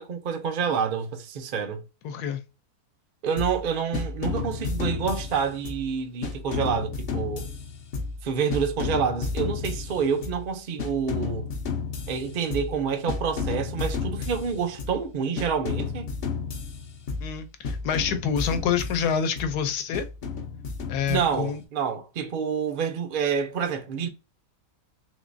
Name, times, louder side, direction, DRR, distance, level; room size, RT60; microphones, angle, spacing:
voice 1, 0.0-1.8 3.2-7.5 8.2-11.5 12.1-16.1 21.1-24.1, right 6 dB, 75° right, 0.4 m, -28 dB
voice 2, 2.0-2.4 17.2-20.1 20.9-21.6, left 7 dB, 80° left, 1.2 m, -27 dB
sound 1, 3.4-3.7 3.9-5.9 6.2-8.3 8.5-10.5 10.8-12.8 13.1-15.0 15.4-17.4 17.6-19.5 19.9-21.6, left 5 dB, 60° left, 0.6 m, -32 dB
3.6 x 3.0 x 2.5 m
omnidirectional pair, 1.6 m